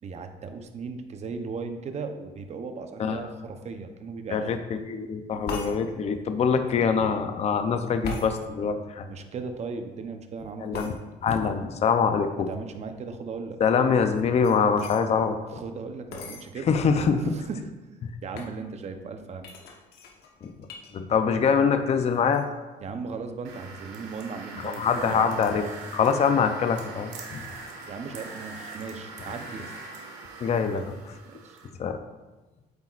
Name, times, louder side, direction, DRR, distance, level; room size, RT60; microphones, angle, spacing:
voice 1, 0.0-4.6 9.1-10.9 12.5-13.6 15.5-16.7 17.2-17.7 18.2-19.5 22.8-25.4 27.9-29.7 30.6-30.9 31.3-31.6, right 4 dB, 40° right, 7 dB, 0.8 m, -37 dB
voice 2, 4.3-9.1 10.6-10.9 11.2-12.5 13.6-15.6 16.7-17.2 20.4-20.5 20.9-22.5 24.6-27.4 30.4-30.9 31.8-32.0, left 6 dB, 40° left, 7 dB, 0.6 m, -24 dB
sound 1, 5.5-5.7 8.0-8.3 10.7-10.9 14.0-15.0 16.1-16.4 17.1-17.2 17.4-17.8 18.3-18.6 19.4-20.9 21.2-21.7 22.0-22.4, left 3 dB, 70° left, 1.3 m, -38 dB
sound 2, 23.4-31.7, right 3 dB, 90° right, 1.6 m, -42 dB
8.4 x 8.3 x 2.5 m, 1.1 s
cardioid pair, 110°, 17 cm